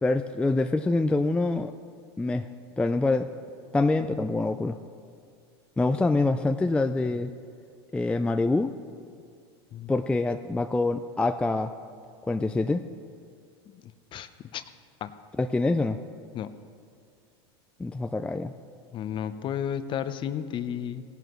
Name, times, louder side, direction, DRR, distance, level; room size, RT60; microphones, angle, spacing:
voice 1, 0.0-1.7 2.2-2.5 2.8-3.3 3.7-4.8 5.8-7.3 7.9-8.7 9.9-11.7 12.3-12.8 15.4-16.0 17.8-18.5, left 2 dB, 10° left, 7 dB, 0.3 m, -25 dB
voice 2, 13.7-14.6 15.0-15.1 16.3-16.5 18.9-21.0, left 9 dB, 35° left, 12 dB, 0.6 m, -33 dB
18.0 x 11.0 x 3.1 m, 2.3 s
supercardioid pair, 110°, 14 cm